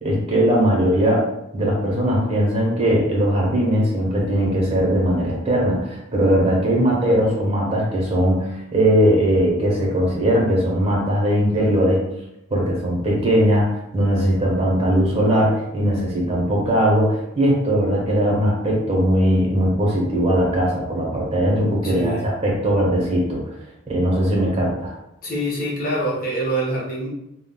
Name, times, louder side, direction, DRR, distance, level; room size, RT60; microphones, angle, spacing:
voice 1, 0.0-1.3 1.5-12.0 12.5-23.4 23.9-24.9, equal, 30° right, -3 dB, 0.7 m, -19 dB
voice 2, 21.8-22.3 25.2-27.1, right 1 dB, 45° left, -4 dB, 0.7 m, -25 dB
2.3 x 2.1 x 3.7 m, 0.84 s
head